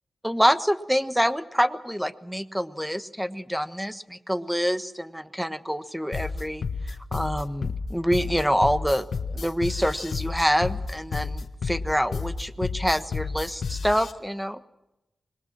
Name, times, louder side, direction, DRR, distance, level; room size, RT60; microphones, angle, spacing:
voice 1, 0.2-14.6, equal, ahead, 10 dB, 1.3 m, -26 dB
sound 1, 6.1-14.1, left 4 dB, 80° left, 1.5 m, -31 dB
25.5 x 21.5 x 6.1 m, 0.91 s
cardioid pair, 65°, 0 cm